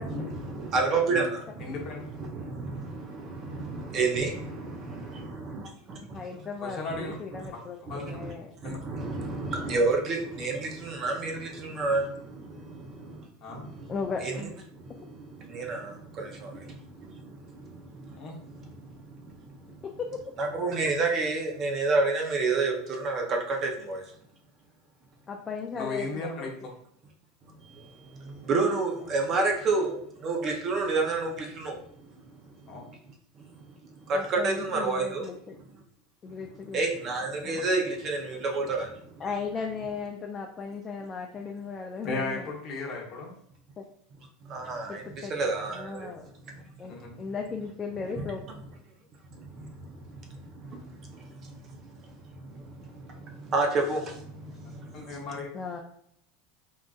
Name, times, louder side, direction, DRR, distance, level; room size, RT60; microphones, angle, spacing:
voice 1, 0.0-6.2 6.9-7.1 7.9-8.3 8.6-13.9 14.2-14.4 14.7-19.8 20.4-24.0 27.6-32.6 33.5-33.6 34.1-35.3 36.7-39.2 44.4-46.1 46.4-46.6 49.3-55.2, right 3 dB, 35° right, 2 dB, 0.6 m, -31 dB
voice 2, 1.6-2.0 6.6-7.2 7.9-8.2 8.6-8.8 13.4-13.6 18.1-18.4 25.7-26.5 32.7-32.8 42.0-43.3 46.9-47.1 54.9-55.5, left 3 dB, 40° left, -1 dB, 1.0 m, -35 dB
voice 3, 6.0-7.8 8.1-8.5 13.9-14.2 19.8-20.2 25.3-26.5 29.1-29.2 34.1-35.6 36.2-36.8 37.4-37.6 39.2-42.5 43.8-43.9 44.9-46.3 46.8-48.4 55.5-55.8, left 5 dB, 25° left, 2 dB, 0.3 m, -36 dB
3.7 x 2.4 x 2.4 m, 0.69 s
supercardioid pair, 130°, 0 cm